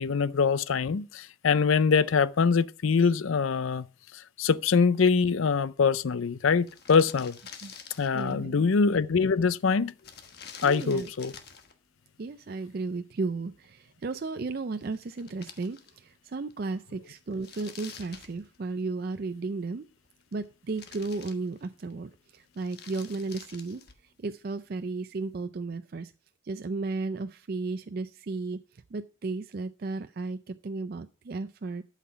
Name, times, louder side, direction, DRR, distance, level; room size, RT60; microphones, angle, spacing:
voice 1, 0.0-3.9 4.4-7.4 8.0-9.9 10.6-11.3, left 5 dB, 80° left, 0.5 m, -24 dB
sound 1, 6.2-6.3 6.5-8.4 10.0-11.8 14.5-14.6 14.8-16.2 16.5-16.6 17.2-18.9 19.9-20.5 20.7-21.9 22.4-24.1, left 6 dB, 50° left, 1.3 m, -48 dB
voice 2, 8.1-8.7 10.6-11.1 12.2-19.9 20.3-23.8 24.2-26.1 26.4-31.8, right 3 dB, 50° right, 0.4 m, -34 dB
12.0 x 5.8 x 5.7 m
head